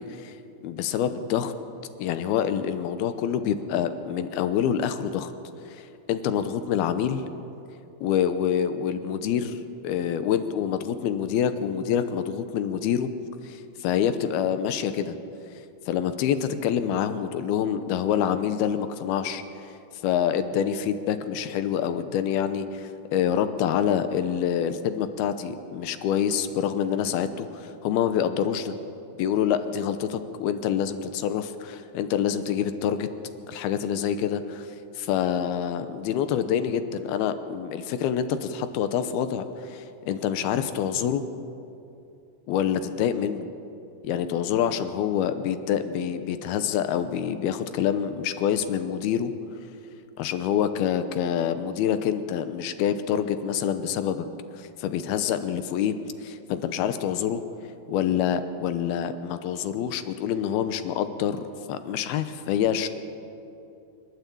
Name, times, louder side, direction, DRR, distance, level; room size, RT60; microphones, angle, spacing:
voice 1, 0.6-1.5 2.0-5.3 5.8-7.2 8.0-13.1 13.4-15.2 15.9-19.4 20.0-28.8 29.2-33.1 33.5-34.7 35.0-41.2 42.5-43.5 44.0-49.3 50.2-54.3 54.6-55.9 56.2-57.4 57.9-62.9, left 9 dB, 75° left, 10 dB, 2.7 m, -26 dB
26.0 x 12.0 x 8.5 m, 2.7 s
omnidirectional pair, 4.7 m